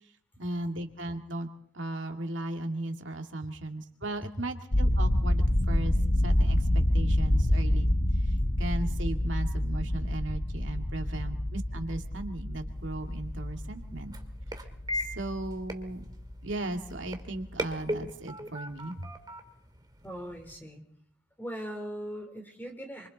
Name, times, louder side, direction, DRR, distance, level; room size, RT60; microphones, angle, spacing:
voice 1, 0.4-1.5 1.7-6.0 6.2-7.9 8.2-14.1 14.9-16.1 16.4-18.9, right 2 dB, 85° right, 4 dB, 2.3 m, -36 dB
sound 1, 4.7-16.6 16.8-17.2 17.5-17.7, left 1 dB, 50° left, 1.2 m, -27 dB
sound 2, 12.7-20.6, equal, 20° right, 2.2 m, -40 dB
voice 2, 20.0-20.8 21.4-23.1, equal, 10° left, 4 dB, 3.8 m, -39 dB
28.0 x 25.5 x 4.1 m, 0.63 s
head